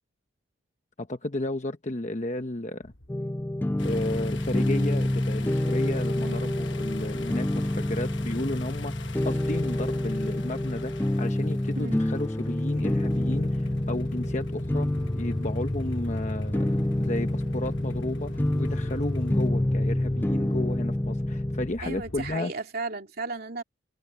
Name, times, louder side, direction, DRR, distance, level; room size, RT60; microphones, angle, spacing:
voice 1, 1.0-2.9 3.8-16.7 17.0-22.5, left 1 dB, 35° left, 1.0 m, -33 dB
sound 1, 2.8-5.5 5.7-8.2 8.5-11.6 11.9-22.4, equal, 80° left, 2.6 m, -41 dB
sound 2, 3.1-21.7, left 1 dB, 10° left, 0.3 m, -28 dB
sound 3, 3.8-19.5, left 3 dB, 65° left, 1.2 m, -45 dB
voice 2, 6.2-6.5 11.7-12.0 21.8-23.6, right 3 dB, 50° right, 2.9 m, -35 dB
head